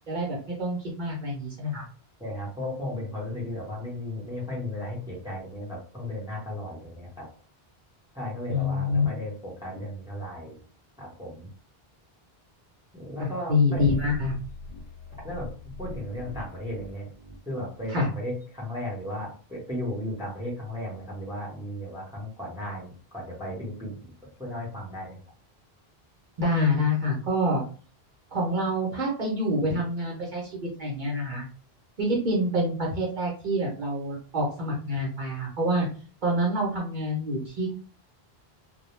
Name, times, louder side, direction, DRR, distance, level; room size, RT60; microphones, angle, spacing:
voice 1, 0.1-1.8 8.5-9.0 13.2-14.4 17.9-18.1 26.4-27.6 28.3-31.4 32.0-35.9 36.2-37.7, left 1 dB, 55° right, -2 dB, 0.8 m, -26 dB
voice 2, 2.2-7.3 8.1-10.6 11.0-11.5 12.9-13.9 15.2-15.5 15.8-17.1 17.4-24.1 24.4-25.2, left 1 dB, 5° right, -5 dB, 0.8 m, -35 dB
sound 1, 13.7-17.9, left 2 dB, 55° left, 0.6 m, -41 dB
2.2 x 2.2 x 3.1 m, 0.40 s
omnidirectional pair, 1.0 m